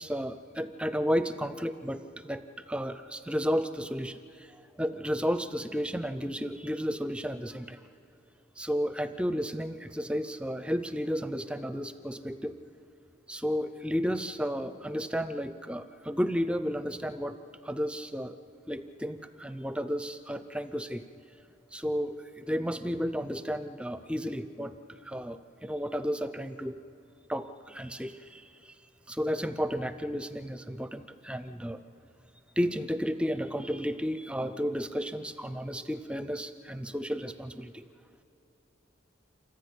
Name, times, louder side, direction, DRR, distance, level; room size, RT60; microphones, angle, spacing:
voice 1, 0.0-7.8 8.6-12.6 13.3-17.4 17.6-18.4 18.7-21.0 21.7-26.8 27.3-28.7 29.1-31.8 32.6-37.8, equal, 5° right, 11 dB, 0.5 m, -33 dB
27.5 x 14.5 x 8.5 m, 2.9 s
head